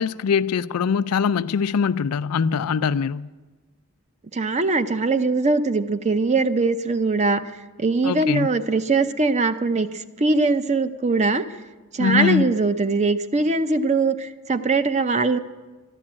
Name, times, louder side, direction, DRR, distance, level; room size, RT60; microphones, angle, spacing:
voice 1, 0.0-3.3 8.0-8.5 12.0-12.5, left 6 dB, 85° left, 0.4 m, -22 dB
voice 2, 4.3-7.4 7.8-11.4 11.9-15.4, right 3 dB, 30° right, 0.6 m, -21 dB
12.0 x 12.0 x 8.7 m
head